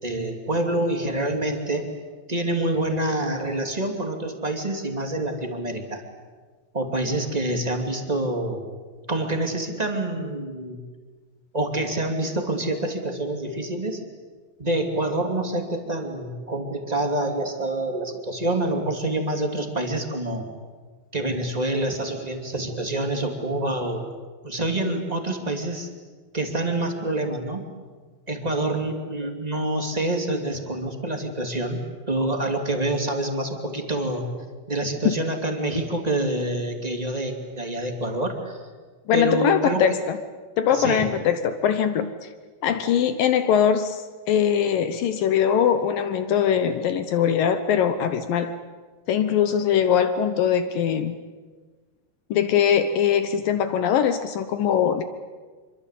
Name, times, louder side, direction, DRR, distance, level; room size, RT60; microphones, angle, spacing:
voice 1, 0.0-1.8 2.3-6.0 6.7-8.6 9.1-10.8 11.5-14.0 14.6-20.4 21.1-24.0 24.4-25.9 26.3-27.6 28.3-34.2 34.7-38.6 39.1-39.9 40.7-41.1, right 1 dB, 15° right, 3 dB, 1.7 m, -27 dB
voice 2, 39.1-40.2 40.6-42.3 42.6-48.5 49.1-51.2 52.3-55.0, left 8 dB, 70° left, 10 dB, 2.2 m, -22 dB
26.5 x 24.0 x 8.4 m, 1.4 s
omnidirectional pair, 5.1 m